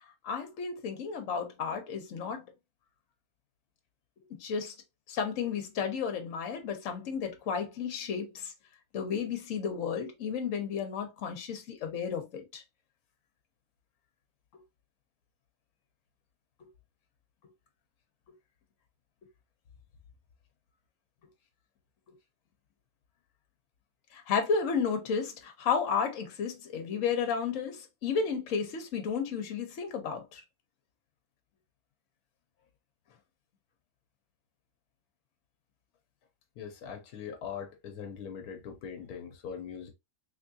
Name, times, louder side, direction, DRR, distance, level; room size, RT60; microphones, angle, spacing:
voice 1, 0.2-2.4 4.4-4.7 5.1-8.5 8.9-12.6 24.1-30.4, left 6 dB, 60° left, 1.2 m, -32 dB
voice 2, 36.6-39.9, left 7 dB, 90° left, 1.2 m, -41 dB
3.5 x 3.2 x 2.7 m
omnidirectional pair, 1.6 m